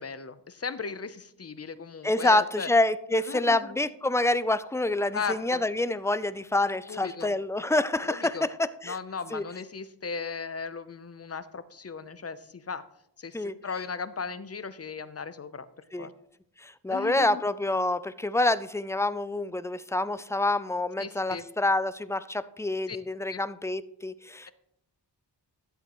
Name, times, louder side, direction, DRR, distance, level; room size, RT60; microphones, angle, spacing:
voice 1, 0.0-2.7 3.2-3.7 5.1-5.6 6.9-7.3 8.0-8.5 8.8-12.8 13.2-15.7 16.0-16.1 16.9-17.4 21.0-21.4 22.9-23.0 23.3-23.4, left 5 dB, 35° left, 13 dB, 0.7 m, -37 dB
voice 2, 2.0-9.0 9.3-9.4 13.3-13.5 15.9-16.1 16.6-24.5, left 2 dB, 5° left, 15 dB, 0.3 m, -27 dB
12.5 x 7.9 x 3.1 m, 0.74 s
cardioid pair, 60°, 43 cm